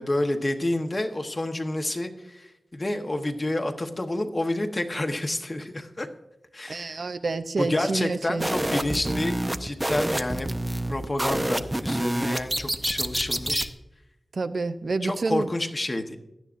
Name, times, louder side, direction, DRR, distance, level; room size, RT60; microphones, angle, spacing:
voice 1, 0.0-6.1 6.5-7.1 7.6-10.5 10.9-13.7 15.0-16.2, left 1 dB, 30° left, 5 dB, 1.1 m, -29 dB
voice 2, 6.7-8.5 8.9-9.2 14.3-15.5, right 3 dB, 65° right, 10 dB, 0.5 m, -29 dB
sound 1, 8.4-13.7, right 1 dB, 15° right, 0.6 m, -28 dB
16.5 x 11.0 x 2.5 m, 0.93 s
wide cardioid pair, 105°, 0 cm